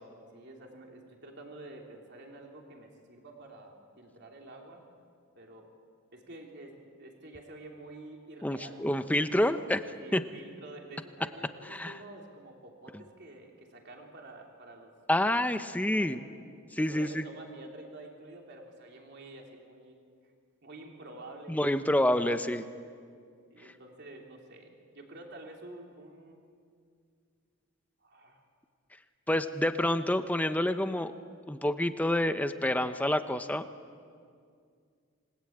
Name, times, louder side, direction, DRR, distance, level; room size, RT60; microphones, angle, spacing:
voice 1, 0.3-4.8 5.3-5.7 6.1-9.1 10.0-15.4 15.7-16.1 16.8-19.9 20.2-20.3 20.6-21.6 23.5-26.4 28.0-28.4, right 2 dB, 50° right, 1 dB, 3.4 m, -49 dB
voice 2, 8.4-9.8 10.1-10.2 11.7-12.0 15.1-16.2 16.7-17.2 21.5-22.6 29.3-31.1 31.5-33.6, left 1 dB, 5° left, 9 dB, 0.8 m, -28 dB
28.0 x 20.5 x 8.8 m, 2.2 s
head